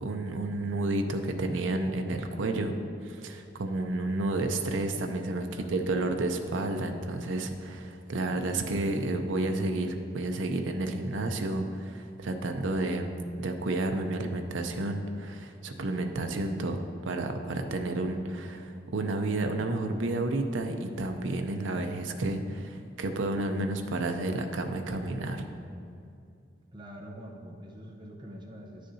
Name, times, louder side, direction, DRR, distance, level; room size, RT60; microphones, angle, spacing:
voice 1, 0.0-2.7 3.0-13.1 13.4-25.4, right 2 dB, 85° right, 5 dB, 0.6 m, -31 dB
voice 2, 5.5-5.9 26.7-28.9, equal, 25° right, -1 dB, 0.7 m, -45 dB
10.5 x 6.5 x 2.7 m, 2.5 s
head